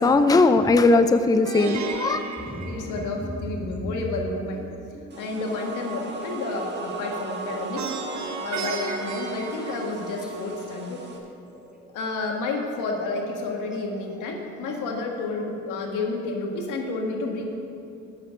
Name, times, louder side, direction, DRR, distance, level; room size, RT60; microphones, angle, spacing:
voice 1, 0.0-2.2, left 3 dB, 10° left, 9 dB, 0.5 m, -18 dB
Plucked string instrument, 1.5-3.6 7.8-10.4, right 5 dB, 65° right, 1.1 m, -34 dB
sound 1, 2.4-15.0, right 1 dB, 5° right, 1.2 m, -41 dB
voice 2, 2.5-4.7 5.2-7.9 8.4-11.0 11.9-17.4, left 3 dB, 90° left, 1 dB, 1.5 m, -30 dB
sound 2, 5.1-11.2, right 3 dB, 35° right, 1.6 m, -36 dB
8.1 x 6.7 x 8.3 m, 2.6 s
cardioid pair, 90°, 30 cm